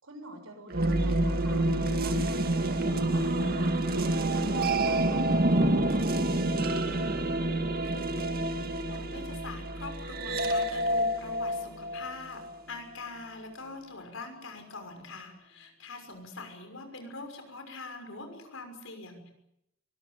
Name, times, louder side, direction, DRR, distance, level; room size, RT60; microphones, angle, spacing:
voice 1, 0.0-1.7 2.0-6.1, right 1 dB, 85° right, 5 dB, 6.8 m, -46 dB
sound 1, 0.7-12.5, right 1 dB, 45° right, 2.0 m, -28 dB
voice 2, 8.9-12.4 12.7-19.3, left 3 dB, 70° left, 6 dB, 6.1 m, -43 dB
23.5 x 20.0 x 9.1 m, 0.80 s
head